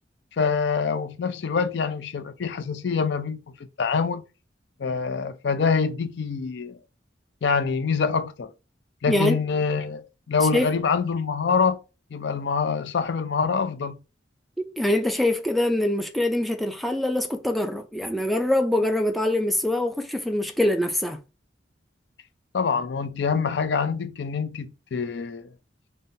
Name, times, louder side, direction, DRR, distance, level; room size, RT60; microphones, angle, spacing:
voice 1, 0.4-3.4 3.8-4.2 4.8-6.8 7.4-8.5 9.0-11.8 12.1-14.0 22.5-25.5, left 5 dB, 65° left, 0.4 m, -25 dB
voice 2, 9.1-9.4 10.5-10.7 14.6-21.2, left 1 dB, ahead, 0.4 m, -24 dB
5.1 x 2.2 x 2.7 m
head